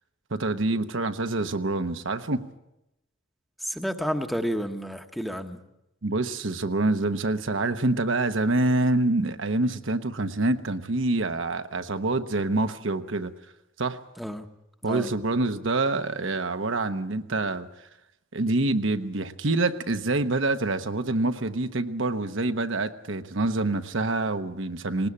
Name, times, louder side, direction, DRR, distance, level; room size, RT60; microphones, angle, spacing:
voice 1, 0.3-2.4 6.0-13.3 13.8-14.0 14.8-17.7 18.3-25.1, right 2 dB, 65° right, 8 dB, 1.0 m, -26 dB
voice 2, 3.6-5.6 14.2-14.4 14.8-15.1, equal, ahead, 7 dB, 1.1 m, -30 dB
19.5 x 19.5 x 8.6 m, 0.87 s
head